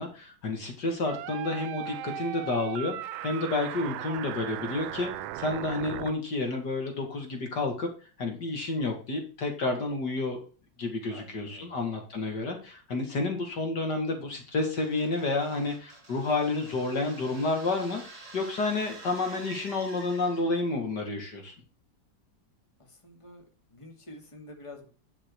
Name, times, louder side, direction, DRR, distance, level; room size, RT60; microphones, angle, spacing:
voice 1, 0.0-2.9 3.2-7.9 8.2-10.4 10.8-21.6, left 3 dB, 60° left, 3 dB, 2.6 m, -30 dB
sound 1, 1.1-6.1, right 12 dB, 90° right, 1.4 m, -37 dB
voice 2, 11.1-11.8 22.8-23.4 23.7-24.9, left 2 dB, 15° left, 2 dB, 2.4 m, -48 dB
sound 2, 14.8-20.7, right 2 dB, 65° right, 4.5 m, -48 dB
10.5 x 5.8 x 4.6 m, 0.36 s
omnidirectional pair, 2.1 m